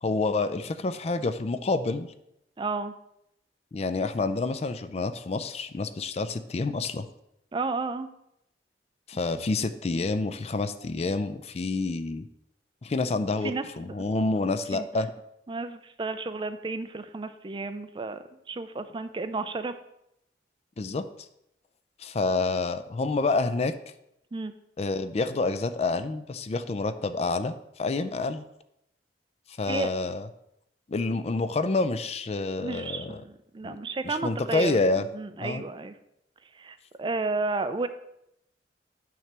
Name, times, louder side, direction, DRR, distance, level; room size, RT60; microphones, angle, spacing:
voice 1, 0.0-2.1 3.7-7.1 9.1-12.3 12.8-15.1 20.8-21.1 22.0-23.8 24.8-28.5 29.5-30.3 30.9-33.2 33.6-33.8 34.0-35.1 35.4-35.6, left 3 dB, 35° left, 11 dB, 0.4 m, -28 dB
voice 2, 2.6-2.9 7.5-8.1 13.4-14.9 15.5-18.2 18.5-19.7 24.3-24.5 29.7-29.9 32.6-34.8 35.1-35.9 36.5-37.9, right 3 dB, 25° right, 10 dB, 0.4 m, -32 dB
9.4 x 3.3 x 6.0 m, 0.80 s
head